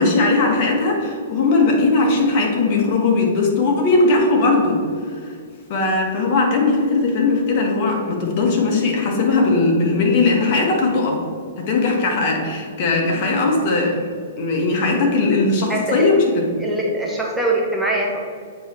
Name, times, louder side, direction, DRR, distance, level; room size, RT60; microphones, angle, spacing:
voice 1, 0.0-4.8 5.7-11.2 11.6-14.0 14.4-16.4, left 3 dB, 45° left, 0 dB, 1.5 m, -18 dB
voice 2, 15.7-16.1 16.6-18.2, right 1 dB, ahead, -3 dB, 0.8 m, -22 dB
8.0 x 3.2 x 4.5 m, 2.1 s
hypercardioid pair, 130°, 0 cm